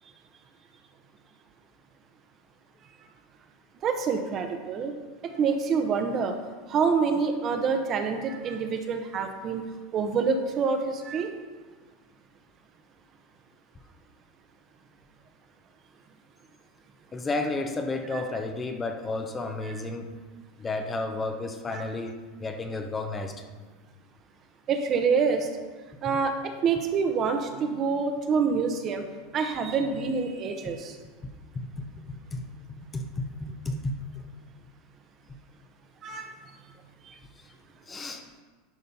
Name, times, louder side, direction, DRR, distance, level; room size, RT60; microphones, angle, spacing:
voice 1, 3.8-4.9 5.2-6.4 6.7-9.6 9.9-11.3 18.1-18.2 21.7-21.8 24.7-25.5 26.0-29.0 29.3-31.0 36.0-36.3 37.0-37.1, right 5 dB, 40° right, 5 dB, 1.0 m, -26 dB
voice 2, 17.1-20.1 20.6-23.4 30.7-30.8 31.5-34.2 37.1-37.2 37.9-38.2, left 2 dB, 20° left, 5 dB, 0.8 m, -32 dB
11.0 x 3.9 x 5.5 m, 1.4 s
hypercardioid pair, 105°, 0 cm